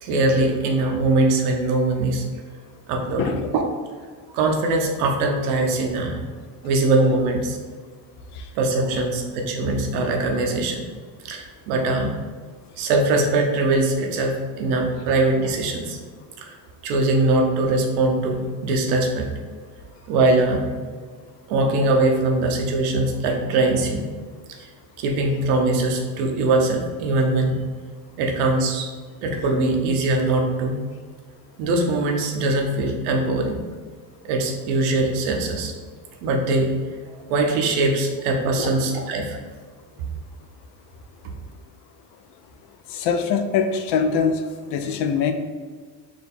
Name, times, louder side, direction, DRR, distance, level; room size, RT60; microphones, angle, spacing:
voice 1, 0.0-2.2 2.9-3.4 4.3-6.2 6.6-7.6 8.5-10.9 11.2-12.2 12.8-16.0 16.4-16.6 16.8-19.3 20.1-20.7 21.5-24.0 24.5-24.7 25.0-27.6 28.2-28.9 29.2-30.8 31.6-33.6 34.2-35.7 36.2-36.7 37.3-39.4, right 2 dB, 90° right, 2 dB, 0.8 m, -22 dB
voice 2, 42.9-44.4 44.7-45.3, left 6 dB, 70° left, 7 dB, 0.6 m, -23 dB
4.3 x 2.4 x 4.2 m, 1.5 s
supercardioid pair, 90°, 42 cm